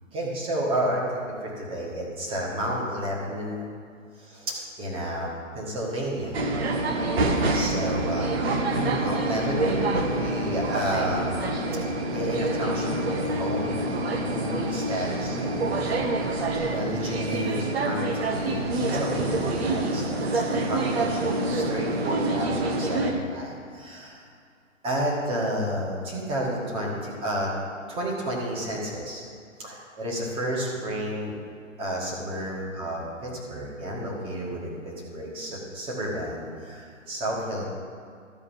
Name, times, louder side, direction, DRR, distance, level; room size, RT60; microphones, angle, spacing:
voice 1, 0.1-3.6 4.2-5.3 5.5-6.4 7.5-8.4 8.7-11.4 12.1-13.8 14.2-24.2 24.8-27.5 27.9-29.2 29.6-31.3 31.8-37.6, equal, 15° right, -4 dB, 1.9 m, -31 dB
sound 1, 6.3-23.1, right 2 dB, 50° right, 1.2 m, -27 dB
12.5 x 5.0 x 7.3 m, 2.2 s
figure-of-eight pair, 135°, 39 cm